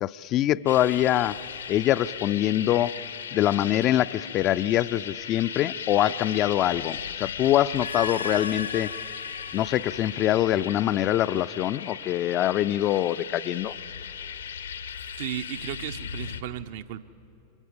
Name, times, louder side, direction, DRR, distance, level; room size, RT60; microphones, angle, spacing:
voice 1, 0.0-1.4 1.7-3.0 3.3-8.9 9.5-13.7, left 13 dB, 35° left, 15 dB, 0.4 m, -24 dB
sound 1, 0.7-2.6 6.5-11.0 13.5-16.4, left 4 dB, 85° left, 1.3 m, -40 dB
sound 2, 0.7-16.4, left 8 dB, 65° left, 0.8 m, -37 dB
voice 2, 15.1-17.0, right 11 dB, 50° right, 11 dB, 0.7 m, -35 dB
29.0 x 25.0 x 5.1 m, 2.8 s
figure-of-eight pair, 90°, 0 cm